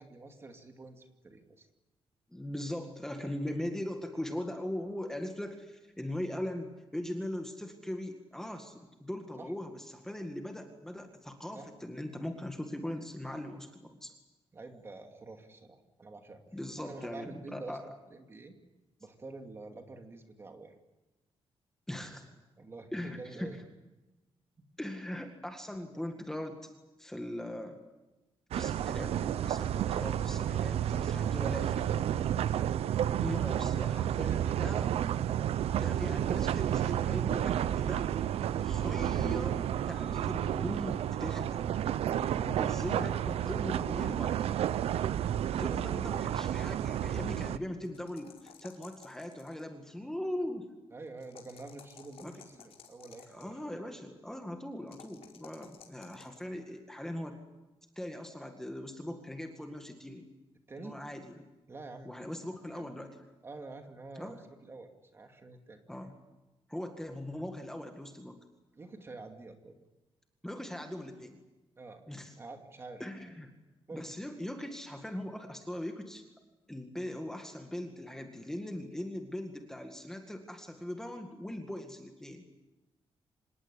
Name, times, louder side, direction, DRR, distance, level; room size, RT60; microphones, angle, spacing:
voice 1, 0.0-1.7 9.4-9.5 11.5-11.7 14.5-16.4 16.8-18.5 19.0-20.8 22.6-23.6 33.9-34.8 50.9-53.8 60.7-61.0 61.7-62.1 62.7-62.8 63.4-65.8 68.8-69.7 71.8-72.0 72.4-73.0 73.9-74.0, right 3 dB, 25° right, 5 dB, 2.5 m, -48 dB
voice 2, 2.3-14.1 16.5-18.0 21.9-22.3 22.9-23.6 24.8-26.6 27.0-27.8 28.5-29.2 29.4-32.1 33.2-35.0 35.7-38.1 38.6-41.7 42.3-44.4 45.6-50.7 52.2-52.4 53.3-57.4 58.0-60.3 60.8-61.4 62.1-63.1 64.2-64.4 65.9-66.1 66.7-68.4 70.4-71.4 72.1-72.3 73.0-73.5 73.9-76.2 76.7-82.4, left 1 dB, 5° left, 4 dB, 2.0 m, -40 dB
sound 1, 28.5-47.6, right 10 dB, 75° right, 0.8 m, -31 dB
sound 2, 47.8-49.7 51.2-53.5 54.9-56.4, left 8 dB, 75° left, 4.8 m, -55 dB
26.5 x 19.0 x 9.9 m, 1.1 s
wide cardioid pair, 180°, 10 cm